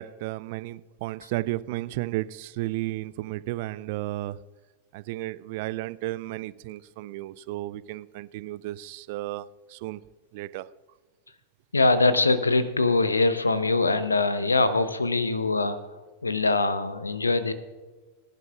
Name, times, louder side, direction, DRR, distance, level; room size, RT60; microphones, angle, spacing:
voice 1, 0.0-4.4 4.9-10.0 10.3-10.7, right 17 dB, 50° right, 18 dB, 0.4 m, -33 dB
voice 2, 11.7-16.0 16.2-17.5, left 3 dB, 80° left, 13 dB, 0.8 m, -23 dB
21.0 x 10.5 x 2.4 m, 1.3 s
figure-of-eight pair, 90°, 0 cm